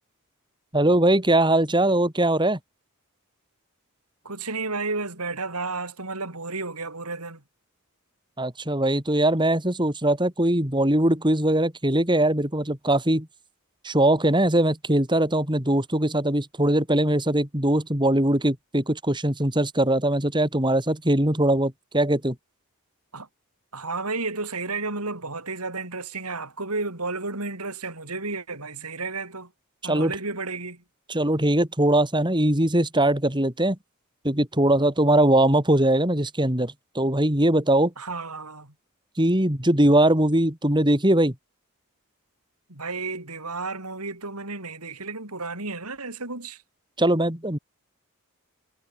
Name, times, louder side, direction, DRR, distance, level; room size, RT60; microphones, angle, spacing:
voice 1, 0.7-2.6 8.4-13.3 13.8-22.4 29.8-30.1 31.1-33.8 34.2-37.9 39.2-41.3 47.0-47.6, right 1 dB, 20° right, 4.1 m, -21 dB
voice 2, 4.2-7.4 23.1-23.3 23.7-29.5 29.8-30.8 38.0-38.7 42.7-46.6, right 3 dB, 90° right, 6.0 m, -32 dB
head